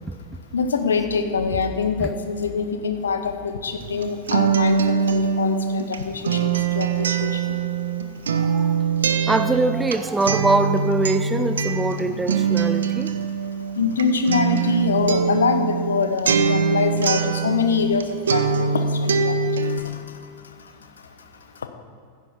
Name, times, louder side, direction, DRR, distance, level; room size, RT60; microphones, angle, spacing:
voice 1, 0.5-7.6 13.7-21.3 21.5-21.7, left 5 dB, 70° left, 8 dB, 1.0 m, -25 dB
Acoustic guitar, 3.8-18.0 18.3-19.8, right 6 dB, 65° right, 0.8 m, -23 dB
voice 2, 8.3-8.7 9.3-13.1, right 2 dB, 10° right, 10 dB, 0.6 m, -23 dB
15.0 x 10.5 x 4.4 m, 2.2 s
figure-of-eight pair, 90°, 0 cm